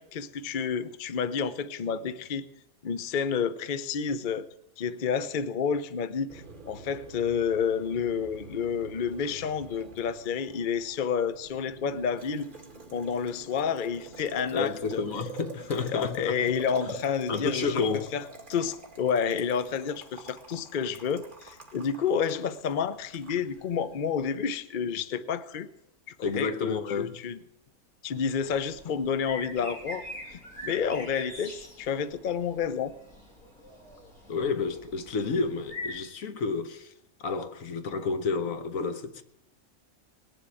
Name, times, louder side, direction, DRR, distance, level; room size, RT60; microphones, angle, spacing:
voice 1, 0.0-2.5 2.8-4.5 4.8-12.5 12.9-15.0 15.9-17.8 18.1-18.2 18.5-25.7 26.4-27.4 28.0-32.9, left 7 dB, 45° left, 0.7 m, -30 dB
Boiling, 6.3-24.2, right 3 dB, 35° right, 2.1 m, -46 dB
voice 2, 14.5-16.4 16.8-17.0 17.3-18.1 26.2-27.2 34.3-36.9 37.2-39.2, left 4 dB, 70° left, 1.4 m, -30 dB
sound 1, 28.4-36.0, left 1 dB, 90° left, 3.3 m, -43 dB
20.0 x 7.3 x 8.9 m
omnidirectional pair, 1.5 m